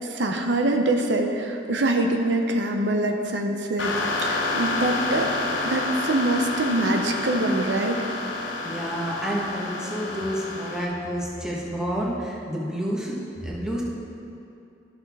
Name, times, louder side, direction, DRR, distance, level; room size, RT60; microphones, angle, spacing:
voice 1, 0.0-3.9 4.2-5.3 5.6-8.0, right 2 dB, 80° right, 4 dB, 0.7 m, -24 dB
sound 1, 3.8-10.8, left 2 dB, 85° left, 1.0 m, -29 dB
voice 2, 8.4-13.8, equal, 5° right, -4 dB, 1.1 m, -29 dB
13.0 x 6.1 x 3.5 m, 2.7 s
head